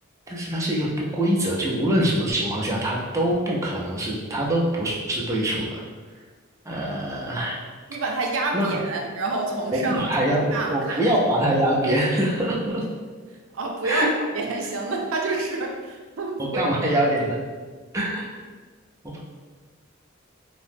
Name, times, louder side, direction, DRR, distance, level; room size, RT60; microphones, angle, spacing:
voice 1, 0.3-5.8 6.7-7.6 8.5-8.8 9.7-12.8 13.8-14.1 16.4-17.4 17.9-18.3 19.0-19.2, right 1 dB, 15° right, -4 dB, 0.4 m, -24 dB
voice 2, 7.9-11.1 13.5-16.7, right 3 dB, 75° right, 0 dB, 0.4 m, -28 dB
2.7 x 2.0 x 3.3 m, 1.5 s
head